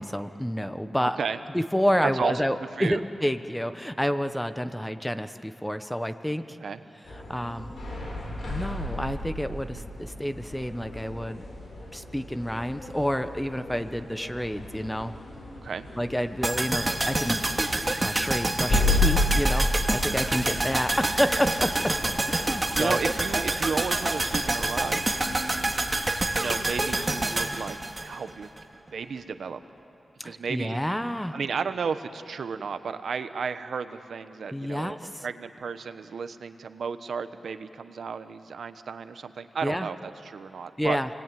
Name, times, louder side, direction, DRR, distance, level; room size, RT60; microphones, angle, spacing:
voice 1, 0.0-1.2 1.5-6.4 7.3-7.7 8.5-11.4 11.9-15.1 16.0-17.5 18.0-21.9 22.3-23.0 30.2-31.4 34.5-35.3 39.6-39.9 40.8-41.1, equal, 5° left, 10 dB, 1.1 m, -29 dB
voice 2, 1.0-1.4 2.0-3.0 4.8-4.9 6.6-6.8 15.6-15.9 20.6-20.7 22.5-25.1 26.3-28.5 28.9-29.6 30.2-30.8 31.3-41.0, right 5 dB, 75° right, 10 dB, 1.1 m, -33 dB
sound 1, 7.0-26.0, left 2 dB, 60° left, 7.5 m, -33 dB
sound 2, 16.4-28.6 28.9-29.0, right 2 dB, 25° right, 2.3 m, -27 dB
28.5 x 20.0 x 9.3 m, 2.9 s
wide cardioid pair, 85°, 0 cm